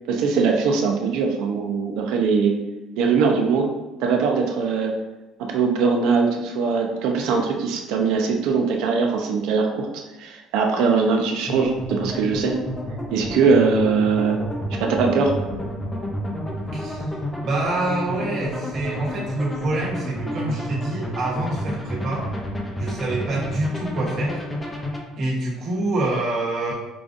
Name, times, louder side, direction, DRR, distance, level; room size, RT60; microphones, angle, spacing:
voice 1, 0.1-2.6 3.0-3.7 4.0-4.9 5.4-9.9 10.2-12.6 13.1-14.4 14.8-15.3, right 5 dB, 75° right, 2 dB, 0.6 m, -21 dB
sound 1, 11.5-25.0, equal, 15° left, 0.6 m, -30 dB
voice 2, 16.7-17.0 17.4-22.2 22.8-24.4 25.2-26.7, right 2 dB, 55° right, -4 dB, 1.2 m, -26 dB
4.9 x 2.5 x 2.5 m, 1.1 s
cardioid pair, 115°, 0 cm